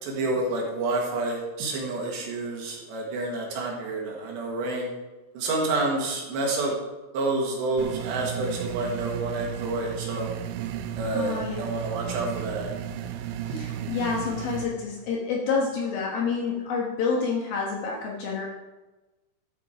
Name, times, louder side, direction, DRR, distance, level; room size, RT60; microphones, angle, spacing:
voice 1, 0.0-4.9 5.4-6.7 7.1-10.3 11.0-12.7, right 2 dB, 65° right, -1 dB, 3.5 m, -29 dB
sound 1, 7.8-14.6, right 10 dB, 85° right, 2.5 m, -34 dB
voice 2, 11.1-11.7 13.5-18.5, left 5 dB, 70° left, -1 dB, 2.3 m, -28 dB
12.5 x 8.1 x 5.0 m, 1.1 s
omnidirectional pair, 5.9 m